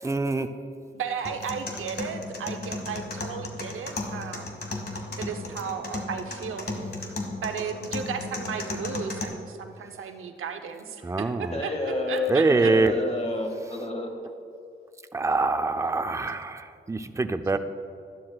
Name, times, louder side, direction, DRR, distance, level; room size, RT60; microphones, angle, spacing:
voice 1, 0.0-0.5 11.0-11.6 12.3-12.9 15.1-17.6, right 3 dB, 15° right, 8 dB, 0.5 m, -24 dB
voice 2, 0.9-4.5 5.2-6.7 7.4-11.7 12.1-12.7, right 6 dB, 85° right, 6 dB, 0.8 m, -34 dB
sound 1, 1.3-9.2, left 2 dB, 50° left, 1.6 m, -35 dB
voice 3, 11.5-14.2, left 2 dB, 30° left, 2 dB, 1.7 m, -29 dB
13.0 x 11.5 x 2.4 m, 2.5 s
cardioid pair, 65°, 21 cm